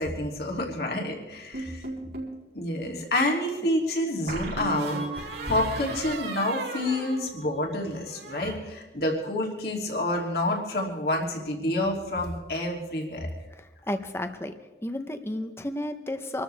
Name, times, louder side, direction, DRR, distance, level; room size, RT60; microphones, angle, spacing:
voice 1, 0.0-1.8 2.5-13.3, left 1 dB, 65° left, 0 dB, 2.9 m, -28 dB
sound 1, 1.5-2.4 4.3-7.8 8.1-8.5, right 2 dB, 80° right, 5.0 m, -35 dB
voice 2, 13.6-14.5 14.8-16.4, left 1 dB, 15° left, 8 dB, 0.9 m, -32 dB
26.0 x 13.5 x 3.4 m, 1.1 s
head